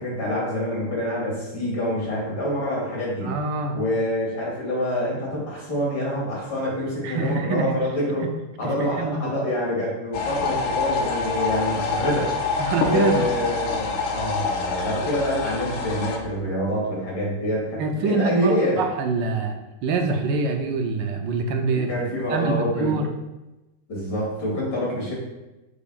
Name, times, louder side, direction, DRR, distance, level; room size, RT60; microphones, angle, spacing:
voice 1, 0.0-3.3 3.7-8.3 8.6-12.3 12.8-18.8 21.7-23.0 23.9-25.1, equal, 80° left, -5 dB, 3.2 m, -26 dB
voice 2, 3.2-3.8 7.0-7.8 8.2-8.3 8.6-9.4 12.6-13.3 17.8-21.9 22.3-23.1, right 4 dB, 80° right, 4 dB, 1.4 m, -25 dB
sound 1, 10.1-16.2, left 4 dB, 60° left, 0.9 m, -26 dB
6.9 x 6.9 x 2.5 m, 1.0 s
omnidirectional pair, 2.0 m